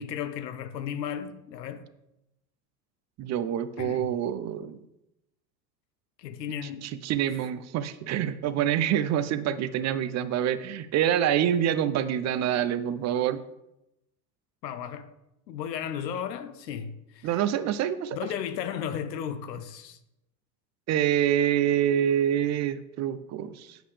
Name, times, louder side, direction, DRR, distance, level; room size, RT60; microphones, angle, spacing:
voice 1, 0.0-1.9 3.8-4.1 6.2-6.9 14.6-15.1 15.5-17.3 18.1-20.0, left 8 dB, 80° left, 0.9 m, -34 dB
voice 2, 3.2-4.8 6.8-13.4 17.2-18.2 20.9-23.8, right 10 dB, 35° right, 0.5 m, -26 dB
8.3 x 7.8 x 3.3 m
hypercardioid pair, 85°, 49 cm